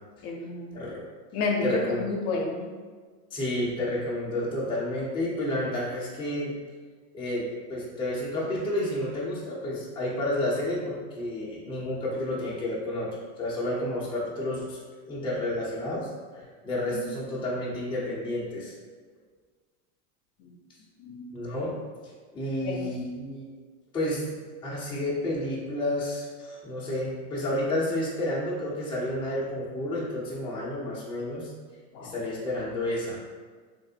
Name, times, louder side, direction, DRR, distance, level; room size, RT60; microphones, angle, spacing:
voice 1, 0.2-0.8 1.3-2.7 16.9-17.1 20.4-20.5 21.0-21.3 22.6-22.8 31.9-32.1, left 3 dB, 55° left, 0 dB, 0.6 m, -30 dB
voice 2, 0.7-1.0 1.6-2.1 3.3-6.6 7.1-13.1 13.4-14.8 15.1-18.7 21.3-21.8 22.3-23.5 23.9-31.5 32.0-33.2, left 1 dB, 10° left, -6 dB, 0.5 m, -30 dB
3.1 x 2.5 x 2.7 m, 1.5 s
supercardioid pair, 120°, 49 cm